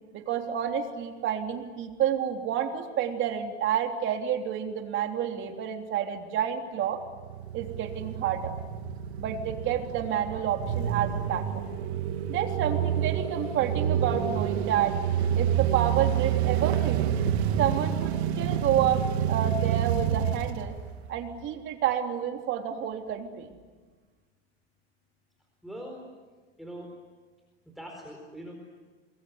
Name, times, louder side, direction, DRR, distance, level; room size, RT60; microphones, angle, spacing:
voice 1, 0.1-7.0 7.5-8.5 9.2-11.5 12.3-15.0 15.4-17.1 17.6-20.7 21.1-23.5, right 9 dB, 40° right, 4 dB, 3.5 m, -29 dB
sound 1, 7.0-21.4, right 9 dB, 85° right, 2.6 m, -28 dB
voice 2, 25.6-26.0 26.6-26.9 27.7-28.5, equal, ahead, 0 dB, 4.5 m, -41 dB
28.0 x 22.0 x 9.6 m, 1.4 s
supercardioid pair, 135°, 32 cm